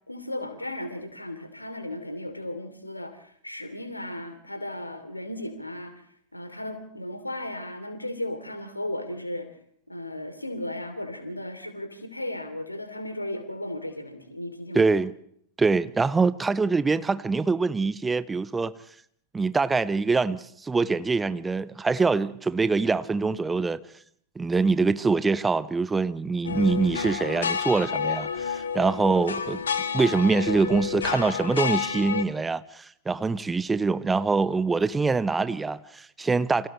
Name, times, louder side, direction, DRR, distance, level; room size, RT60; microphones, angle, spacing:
voice 1, 0.1-6.0 6.3-9.5 9.9-14.9, left 1 dB, 85° left, 3.1 m, -35 dB
voice 2, 14.7-15.1 15.6-18.7 19.3-23.8 24.4-29.6 29.9-36.7, right 4 dB, 10° right, 0.8 m, -24 dB
sound 1, 26.4-32.2, left 6 dB, 70° left, 1.5 m, -30 dB
29.5 x 27.5 x 3.2 m
figure-of-eight pair, 90°, 0 cm